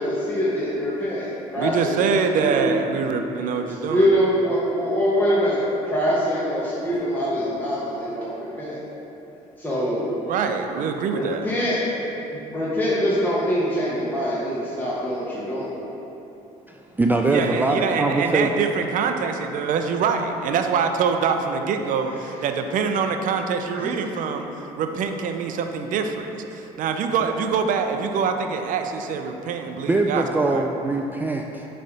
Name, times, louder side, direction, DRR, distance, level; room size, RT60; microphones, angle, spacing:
voice 1, 0.0-2.6 3.9-8.8 9.6-10.1 11.1-11.8 12.3-15.8 23.8-24.0, equal, 10° left, -9 dB, 1.2 m, -24 dB
voice 2, 1.6-4.1 10.3-11.5 17.2-24.5 24.8-30.6, right 6 dB, 60° right, 6 dB, 0.5 m, -24 dB
voice 3, 16.7-18.5 29.9-31.7, right 2 dB, 10° right, 1 dB, 0.3 m, -22 dB
6.6 x 3.3 x 5.1 m, 3.0 s
supercardioid pair, 75°, 15 cm